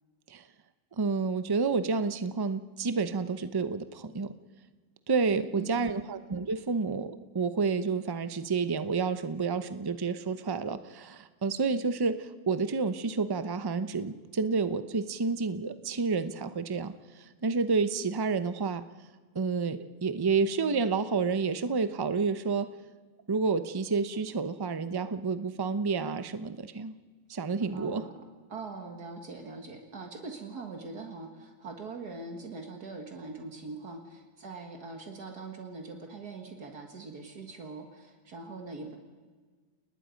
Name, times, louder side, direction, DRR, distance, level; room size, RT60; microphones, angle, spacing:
voice 1, 1.0-4.3 5.1-18.8 19.3-22.7 23.3-26.9 27.3-28.0, right 4 dB, 35° right, 11 dB, 0.4 m, -29 dB
voice 2, 5.4-5.9 27.7-28.2 28.5-39.0, right 3 dB, 70° right, 3 dB, 2.2 m, -42 dB
30.0 x 19.5 x 5.2 m, 1.5 s
omnidirectional pair, 1.8 m